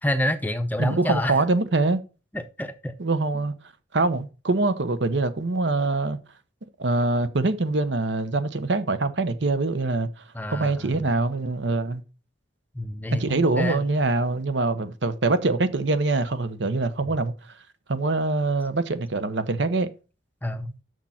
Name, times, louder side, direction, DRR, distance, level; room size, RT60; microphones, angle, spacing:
voice 1, 0.0-1.4 2.3-2.9 3.3-3.4 10.3-11.1 12.7-13.8 20.4-20.7, left 1 dB, 10° left, 0.6 m, -28 dB
voice 2, 0.8-2.0 3.0-3.5 3.9-6.2 6.8-10.1 10.5-12.0 13.1-17.3 17.9-19.9, right 3 dB, 70° right, 0.9 m, -24 dB
6.6 x 6.2 x 5.7 m
head